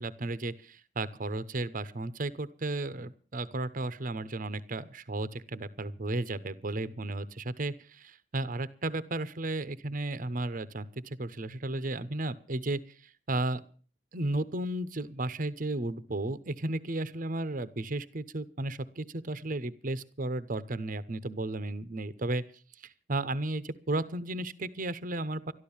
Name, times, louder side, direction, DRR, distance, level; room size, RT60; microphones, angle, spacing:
voice 1, 0.0-13.6 14.1-22.4 22.8-25.5, right 2 dB, 50° right, 14 dB, 0.8 m, -34 dB
13.0 x 12.0 x 7.1 m, 0.41 s
head